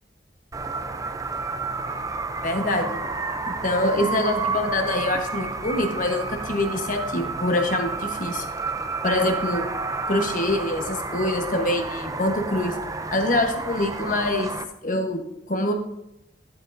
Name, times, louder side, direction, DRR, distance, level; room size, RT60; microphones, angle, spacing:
sound 1, 0.5-14.6, right 3 dB, 20° right, 0.4 m, -30 dB
voice 1, 2.4-3.0 3.5-8.4 9.0-9.7 10.1-12.8 13.1-14.5 14.8-15.2 15.5-15.7, left 1 dB, 45° left, 5 dB, 1.1 m, -25 dB
11.5 x 7.2 x 2.6 m, 0.88 s
head